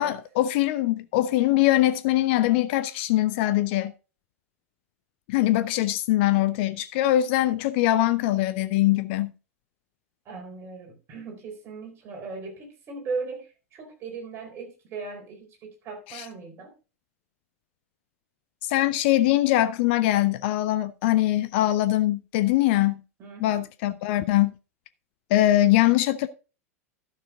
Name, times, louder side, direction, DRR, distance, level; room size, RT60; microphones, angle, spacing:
voice 1, 0.0-3.9 5.3-9.3 16.1-16.3 18.6-23.0 23.4-24.6 25.3-26.3, left 15 dB, 45° left, 0.5 m, -22 dB
voice 2, 10.3-16.7 23.2-23.6, right 4 dB, 35° right, 4.1 m, -38 dB
12.0 x 6.7 x 3.7 m
figure-of-eight pair, 90°, 8 cm